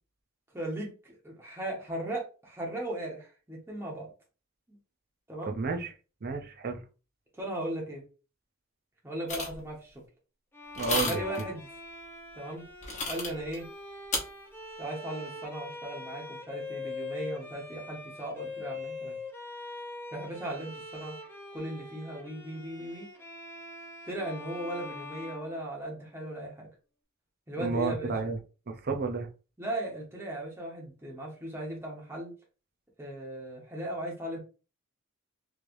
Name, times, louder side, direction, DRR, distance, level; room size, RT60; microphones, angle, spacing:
voice 1, 0.5-4.1 4.7-4.8 5.3-5.6 7.4-8.0 9.0-10.0 11.0-11.7 12.3-12.7 13.1-13.7 14.8-19.2 20.1-21.2 21.5-23.1 24.1-26.7 27.5-28.3 29.6-32.3 33.0-34.4, right 1 dB, 10° right, -3 dB, 1.1 m, -37 dB
voice 2, 5.5-5.9 6.2-6.8 10.8-11.2 27.6-28.4 28.7-29.3, right 4 dB, 45° right, 4 dB, 0.5 m, -31 dB
sound 1, 9.3-9.6 10.7-11.4 12.8-13.6 14.1-14.2, left 3 dB, 35° left, 1.0 m, -31 dB
Bowed string instrument, 10.5-26.3, left 3 dB, 10° left, 0.6 m, -43 dB
3.2 x 3.2 x 2.6 m, 0.35 s
head